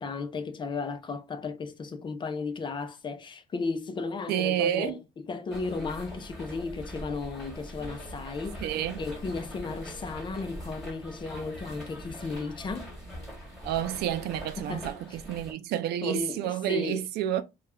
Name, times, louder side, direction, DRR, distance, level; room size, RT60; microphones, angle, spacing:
voice 1, 0.0-12.9 14.6-14.9 16.0-17.0, left 4 dB, 30° left, 0.4 m, -35 dB
voice 2, 4.3-5.0 8.6-9.0 13.6-17.4, right 11 dB, 75° right, 0.4 m, -29 dB
sound 1, 5.5-15.5, equal, ahead, 1.3 m, -42 dB
2.3 x 2.1 x 3.4 m
cardioid pair, 110°, 17 cm